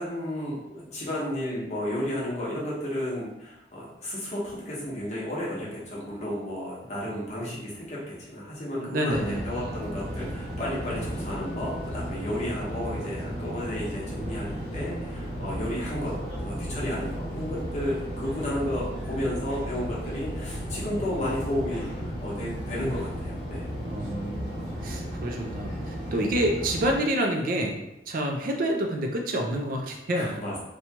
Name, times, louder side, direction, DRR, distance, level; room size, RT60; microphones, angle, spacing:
voice 1, 0.0-16.1 16.4-21.9 22.2-23.6 30.1-30.6, left 1 dB, 40° left, -6 dB, 0.9 m, -32 dB
voice 2, 8.8-9.4 23.8-30.5, right 1 dB, 50° right, 2 dB, 0.4 m, -28 dB
sound 1, 9.1-27.0, equal, 5° right, 1.3 m, -34 dB
2.8 x 2.2 x 2.8 m, 0.88 s
head